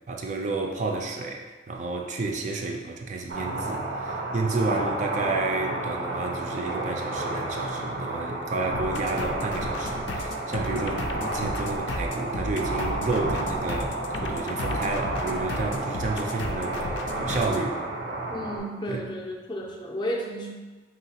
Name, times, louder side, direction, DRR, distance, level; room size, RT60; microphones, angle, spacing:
voice 1, 0.1-16.8 17.2-17.8 18.9-19.0, right 3 dB, 40° right, 2 dB, 0.4 m, -31 dB
sound 1, 3.3-18.6, right 2 dB, 85° right, 0.7 m, -31 dB
sound 2, 8.7-17.6, left 2 dB, 85° left, 0.4 m, -34 dB
voice 2, 18.3-20.5, equal, 25° left, 0 dB, 0.4 m, -32 dB
3.9 x 3.8 x 2.8 m, 1.3 s
head